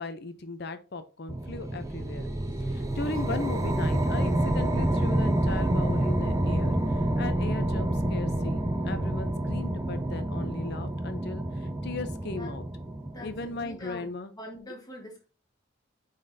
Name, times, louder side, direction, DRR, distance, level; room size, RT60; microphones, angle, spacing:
voice 1, 0.0-2.3 2.6-12.6 13.2-14.3, left 3 dB, 50° left, 10 dB, 0.7 m, -37 dB
sound 1, 1.3-13.8, right 1 dB, 15° right, 0.5 m, -28 dB
voice 2, 13.1-14.1 14.3-15.2, left 1 dB, 20° left, 0 dB, 1.4 m, -43 dB
8.4 x 4.1 x 2.7 m, 0.34 s
head